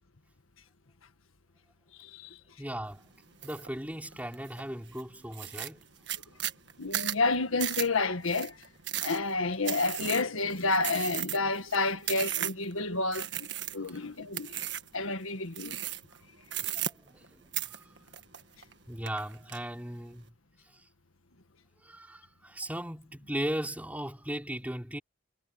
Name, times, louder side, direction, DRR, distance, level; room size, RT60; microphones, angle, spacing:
voice 1, 2.0-2.4 6.8-8.6 9.0-13.5 13.7-14.6 14.9-15.8, left 3 dB, 85° left, 1.7 m, -30 dB
voice 2, 2.6-3.0 3.4-5.9 6.1-6.4 13.8-14.0 15.6-15.8 16.1-16.2 16.6-18.1 18.9-20.3 20.6-20.9 21.8-25.0, equal, 5° right, 4.5 m, -38 dB
sound 1, 3.4-3.7 4.1-4.6 5.0-5.1 5.3-12.7 13.1-14.0 14.3-15.0 15.5-16.2 16.5-17.3 17.5-18.7 19.1-19.6, right 12 dB, 55° right, 1.6 m, -35 dB
head